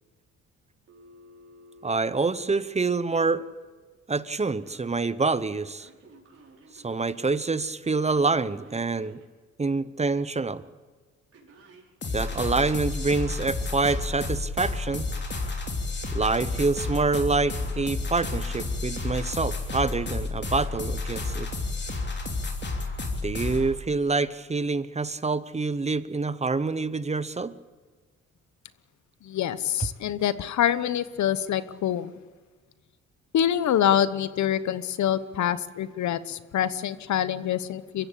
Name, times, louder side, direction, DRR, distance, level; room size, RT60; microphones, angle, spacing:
Telephone, 0.9-3.6 4.3-5.0 5.5-9.3 11.3-11.9, right 1 dB, 50° right, 6.1 m, -53 dB
voice 1, 1.8-3.4 4.1-5.9 6.7-9.2 9.6-10.6 12.1-15.1 16.1-21.5 23.2-27.5, right 3 dB, 20° right, 15 dB, 0.9 m, -26 dB
sound 1, 12.0-23.7, left 3 dB, 35° left, 3.4 m, -31 dB
voice 2, 29.2-32.1 33.3-38.1, left 10 dB, 70° left, 15 dB, 1.1 m, -26 dB
23.5 x 15.0 x 8.6 m, 1.4 s
cardioid pair, 90°, 30 cm